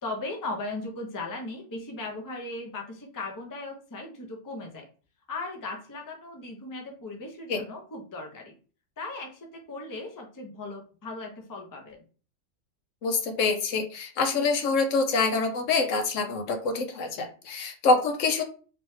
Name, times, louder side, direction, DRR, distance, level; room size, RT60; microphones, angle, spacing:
voice 1, 0.0-4.9 5.3-8.5 9.0-12.0, left 2 dB, 20° left, 2 dB, 0.5 m, -37 dB
voice 2, 13.0-18.4, left 3 dB, 70° left, 6 dB, 1.0 m, -25 dB
3.2 x 3.0 x 3.1 m, 0.38 s
omnidirectional pair, 1.4 m